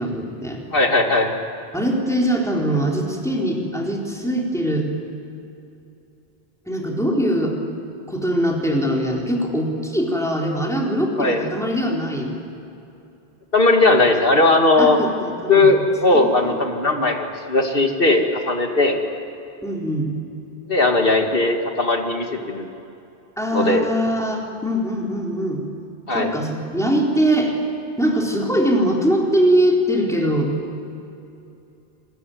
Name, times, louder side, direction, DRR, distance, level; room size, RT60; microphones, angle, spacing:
voice 1, 0.0-0.6 1.7-4.9 6.7-7.6 8.1-12.3 14.8-15.7 16.1-16.6 19.6-20.1 23.4-25.6 26.1-27.5 28.0-30.5, equal, 5° left, -1 dB, 4.1 m, -22 dB
voice 2, 0.7-1.3 11.2-11.5 13.5-15.0 15.5-19.0 20.7-22.7 23.5-23.8 26.1-26.3, left 2 dB, 60° left, 3 dB, 2.6 m, -18 dB
27.5 x 21.5 x 9.3 m, 2.7 s
omnidirectional pair, 1.0 m